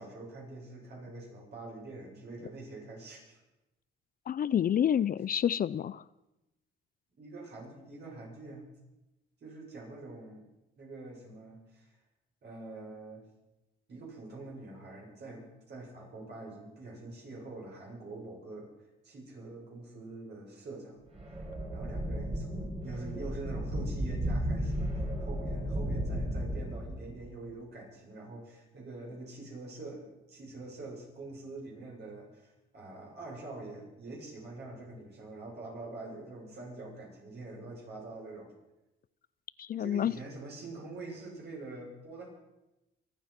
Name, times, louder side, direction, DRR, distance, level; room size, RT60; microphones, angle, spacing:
voice 1, 0.0-3.4 7.2-8.7 9.4-10.4 10.8-12.0 12.4-13.2 13.9-18.7 19.0-21.0 21.3-21.5 21.7-38.5 39.8-42.3, right 2 dB, 55° right, -2 dB, 7.5 m, -45 dB
voice 2, 4.3-6.0 39.6-40.1, left 9 dB, 45° left, 18 dB, 0.5 m, -28 dB
sound 1, 21.1-27.3, equal, 30° right, 4.0 m, -34 dB
24.5 x 9.2 x 5.9 m, 0.95 s
cardioid pair, 90°, 20 cm